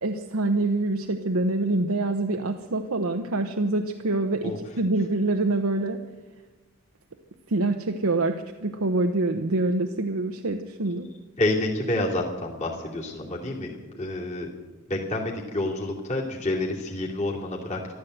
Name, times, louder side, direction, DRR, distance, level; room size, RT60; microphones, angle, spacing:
voice 1, 0.0-6.0 7.5-11.1, right 2 dB, 80° right, 5 dB, 0.9 m, -25 dB
voice 2, 11.4-14.5 14.9-17.8, left 1 dB, 35° left, -2 dB, 2.7 m, -28 dB
14.0 x 13.0 x 7.9 m, 1.3 s
head